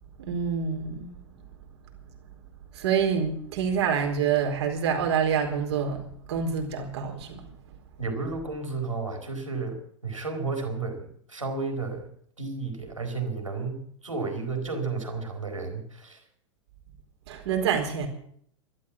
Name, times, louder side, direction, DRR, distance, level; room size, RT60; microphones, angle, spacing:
voice 1, 0.2-1.1 2.7-6.0 6.3-7.5 17.3-18.1, right 7 dB, 55° right, 2 dB, 4.3 m, -27 dB
voice 2, 8.0-12.1 12.4-16.2, right 4 dB, 85° right, 3 dB, 4.3 m, -32 dB
13.5 x 13.0 x 8.5 m, 0.63 s
figure-of-eight pair, 100°, 16 cm